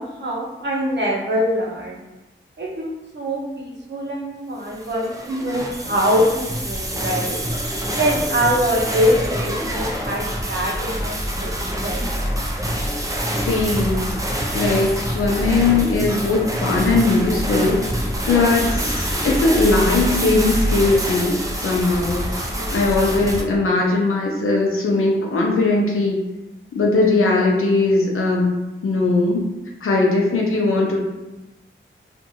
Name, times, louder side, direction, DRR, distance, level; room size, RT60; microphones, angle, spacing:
voice 1, 0.0-2.0 2.6-2.9 3.1-7.4 7.9-12.0 18.2-18.4 22.5-22.8, equal, 60° right, -2 dB, 0.7 m, -24 dB
sound 1, 4.7-23.4, equal, 15° right, 0.4 m, -25 dB
voice 2, 13.5-14.1 14.5-17.9 18.3-26.2 26.7-28.5 28.8-29.4 29.8-31.0, left 3 dB, 90° left, -2 dB, 0.6 m, -19 dB
2.6 x 2.5 x 2.7 m, 1.0 s
wide cardioid pair, 95°, 21 cm